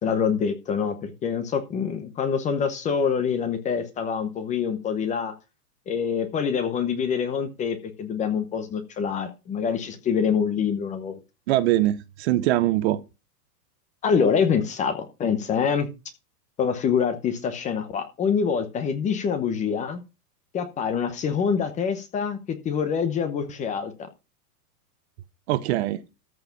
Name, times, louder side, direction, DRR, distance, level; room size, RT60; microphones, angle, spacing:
voice 1, 0.0-5.3 5.9-11.2 14.0-15.9 16.6-20.0 20.5-24.1, left 6 dB, 15° left, 0.8 m, -25 dB
voice 2, 11.5-13.0 25.5-26.0, right 14 dB, 40° right, 0.8 m, -22 dB
13.5 x 4.8 x 5.7 m
supercardioid pair, 155°, 50 cm